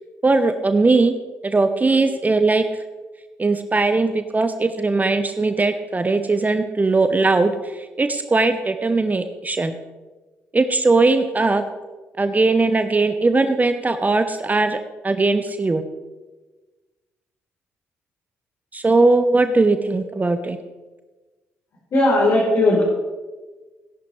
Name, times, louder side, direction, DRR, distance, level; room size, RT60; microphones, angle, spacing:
voice 1, 0.2-1.1 1.4-2.8 3.4-9.8 10.5-11.6 12.2-14.8 15.0-15.8 18.7-20.6, right 3 dB, 25° right, 9 dB, 0.8 m, -19 dB
voice 2, 21.9-22.9, left 1 dB, 50° left, -5 dB, 3.9 m, -17 dB
16.5 x 11.0 x 3.3 m, 1.3 s
figure-of-eight pair, 40°, 7 cm